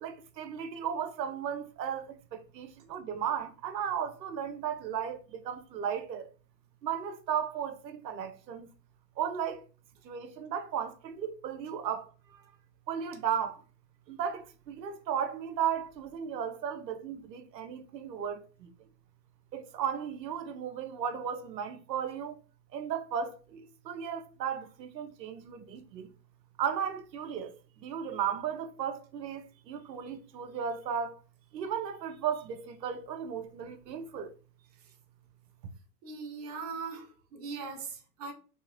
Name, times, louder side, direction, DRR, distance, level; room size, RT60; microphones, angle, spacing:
voice 1, 0.0-6.3 6.8-8.7 9.2-9.7 10.0-12.4 12.9-13.6 14.1-18.9 19.5-22.4 22.7-26.1 26.6-31.2 31.5-34.3, right 8 dB, 80° right, 0.6 m, -35 dB
voice 2, 36.0-38.3, right 4 dB, 25° right, 0.4 m, -40 dB
2.9 x 2.8 x 2.4 m
figure-of-eight pair, 105°, 50 cm